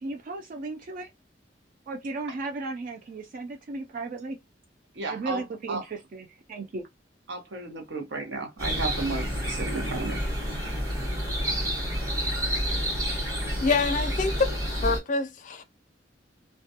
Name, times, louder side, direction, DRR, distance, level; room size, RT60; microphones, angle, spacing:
voice 1, 0.0-1.1 1.9-4.4 5.1-6.9, right 3 dB, 50° right, 0.3 m, -35 dB
voice 2, 4.9-5.4 5.7-5.8 7.3-10.2, right 3 dB, 75° right, 0.8 m, -33 dB
sound 1, 8.6-15.0, equal, 20° right, 1.1 m, -29 dB
voice 3, 13.6-15.6, left 4 dB, 45° left, 0.4 m, -26 dB
2.3 x 2.1 x 2.7 m
head